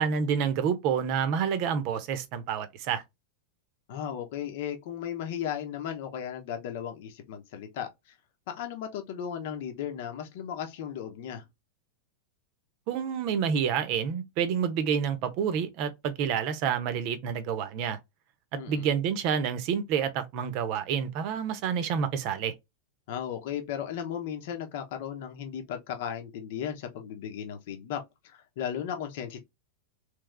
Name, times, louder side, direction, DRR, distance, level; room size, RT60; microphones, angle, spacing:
voice 1, 0.0-3.0 12.9-18.0 18.5-22.5, right 7 dB, 45° right, 0.8 m, -28 dB
voice 2, 3.9-8.1 8.5-11.4 18.6-18.9 23.1-29.4, left 9 dB, 50° left, 0.9 m, -36 dB
3.5 x 3.3 x 3.3 m
figure-of-eight pair, 90°, 0 cm